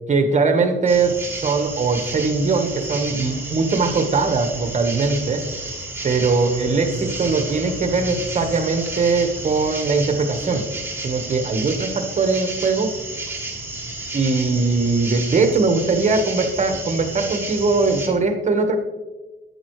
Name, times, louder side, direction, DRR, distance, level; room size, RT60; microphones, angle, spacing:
voice 1, 0.1-1.1 1.4-5.4 6.0-10.7 11.0-12.9 14.1-18.8, right 4 dB, 35° right, 6 dB, 1.4 m, -20 dB
sound 1, 0.9-18.1, right 2 dB, 10° right, 2.1 m, -31 dB
11.0 x 8.8 x 3.2 m, 1.2 s
cardioid pair, 90°, 20 cm